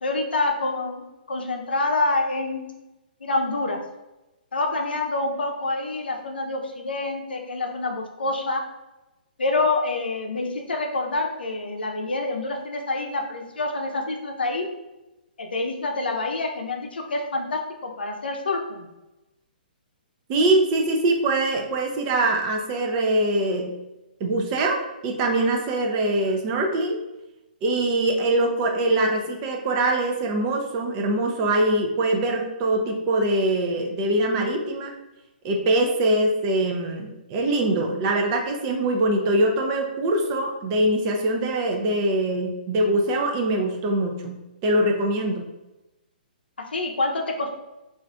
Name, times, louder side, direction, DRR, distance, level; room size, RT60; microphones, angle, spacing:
voice 1, 0.0-1.0 1.3-2.7 3.2-3.8 4.5-8.6 9.4-14.7 15.4-18.9 46.7-47.5, left 2 dB, 85° left, 3 dB, 0.6 m, -27 dB
voice 2, 20.3-23.7 24.2-27.0 27.6-34.9 35.4-45.5, right 1 dB, 30° right, 2 dB, 0.5 m, -23 dB
2.5 x 2.4 x 3.3 m, 0.99 s
hypercardioid pair, 140°, 5 cm